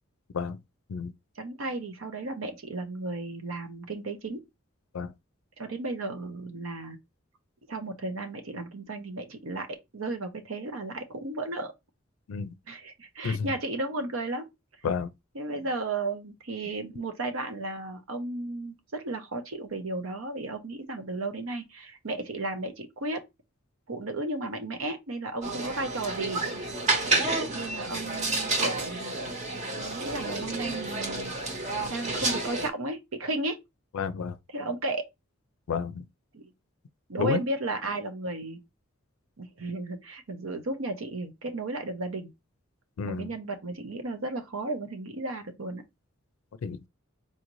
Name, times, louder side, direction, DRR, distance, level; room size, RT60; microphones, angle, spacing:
voice 1, 1.4-4.4 5.6-7.0 7.7-9.7 9.9-11.7 12.7-14.5 15.3-23.2 23.9-26.4 27.2-29.1 29.7-31.4 31.9-33.6 34.5-35.0 36.3-36.5 37.1-38.6 39.4-42.3 43.0-45.8, right 2 dB, 85° right, 0.8 m, -34 dB
sound 1, 25.4-32.7, right 2 dB, 35° right, 0.9 m, -30 dB
voice 2, 33.9-34.3 35.7-36.0 37.2-37.4 43.0-43.3 46.6-46.9, left 5 dB, 80° left, 0.4 m, -30 dB
4.2 x 2.6 x 3.0 m
head